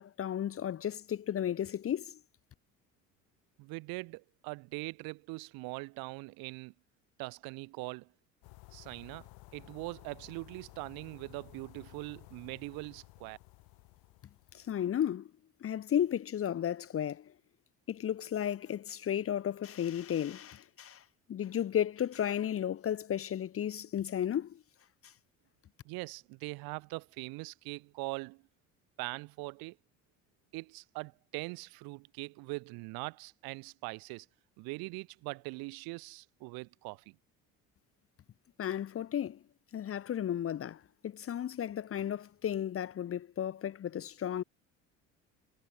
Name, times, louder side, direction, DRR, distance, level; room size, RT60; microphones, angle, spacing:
voice 1, 0.0-2.2 14.5-15.3 15.6-17.3 17.9-21.0 21.3-24.6 38.6-39.4 39.7-44.4, left 10 dB, 35° left, 0.8 m, -34 dB
voice 2, 3.6-6.7 7.2-8.1 8.7-13.4 25.8-28.4 29.0-29.8 30.5-34.3 34.6-37.2, right 25 dB, 70° right, 4.1 m, -42 dB
sound 1, 8.4-14.8, left 25 dB, 70° left, 2.4 m, -55 dB
hypercardioid pair, 60°, 37 cm